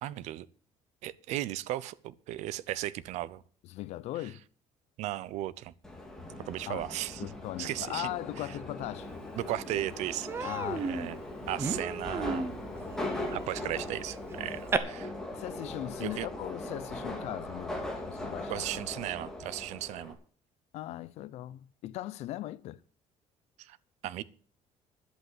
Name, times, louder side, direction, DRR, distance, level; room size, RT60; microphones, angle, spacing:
voice 1, 0.0-0.5 1.0-3.4 5.0-5.7 6.5-7.3 7.6-8.1 8.4-8.5 9.4-11.2 11.5-12.5 13.3-15.1 16.0-16.3 18.5-20.2 23.6-23.8 24.0-24.2, right 14 dB, 70° right, 0.7 m, -36 dB
voice 2, 3.7-4.4 6.7-6.9 7.2-9.1 10.4-11.1 15.3-18.9 20.7-22.8, left 15 dB, 60° left, 0.6 m, -39 dB
Subway metro underground, 5.8-20.1, left 1 dB, 5° left, 2.3 m, -40 dB
Human voice, 9.3-9.4 9.7-9.9 10.3-14.8, right 4 dB, 20° right, 0.9 m, -35 dB
11.0 x 8.1 x 7.7 m
cardioid pair, 175°, 12 cm